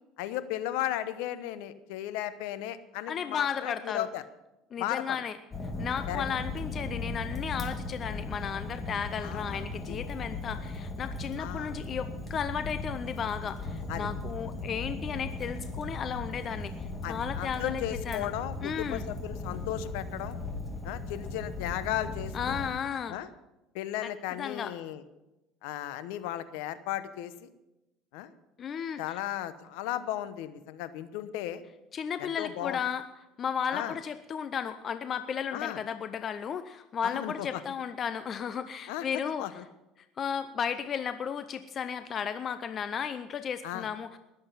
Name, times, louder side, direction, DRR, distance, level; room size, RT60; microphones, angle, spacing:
voice 1, 0.2-4.2 4.8-5.2 6.1-6.2 9.2-10.0 11.4-11.8 13.9-14.1 17.0-20.4 20.8-22.6 23.1-23.3 23.7-25.0 25.6-27.5 28.1-28.3 29.0-31.6 32.2-32.8 33.7-33.9 35.5-35.8 37.0-37.6 38.9-39.0 39.4-39.6 43.6-43.9, left 13 dB, 80° left, 13 dB, 0.9 m, -35 dB
voice 2, 3.1-4.1 4.7-5.4 5.8-18.3 18.6-19.0 22.3-23.2 24.0-24.1 24.4-24.7 28.6-29.2 31.9-33.0 33.4-39.6 40.2-44.2, left 7 dB, 40° left, 11 dB, 0.6 m, -34 dB
Fire, 5.5-22.7, left 2 dB, 20° left, 2.7 m, -37 dB
20.0 x 7.9 x 5.6 m, 0.97 s
supercardioid pair, 105°, 0 cm